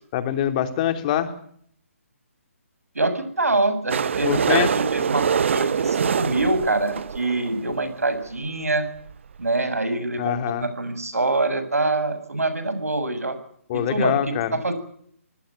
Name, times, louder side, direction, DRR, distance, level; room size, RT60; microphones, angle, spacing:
voice 1, 0.1-1.3 4.2-4.7 10.2-10.7 13.7-14.6, left 11 dB, 30° left, 8 dB, 3.1 m, -24 dB
voice 2, 3.0-8.9 9.4-13.4 13.7-14.2 14.5-14.7, right 2 dB, 80° right, 11 dB, 7.1 m, -25 dB
sound 1, 3.9-7.8 8.4-8.5 8.7-8.8 9.0-9.1 9.4-9.5, right 7 dB, 55° right, 1.0 m, -24 dB
26.0 x 20.0 x 8.7 m, 0.65 s
figure-of-eight pair, 145°, 8 cm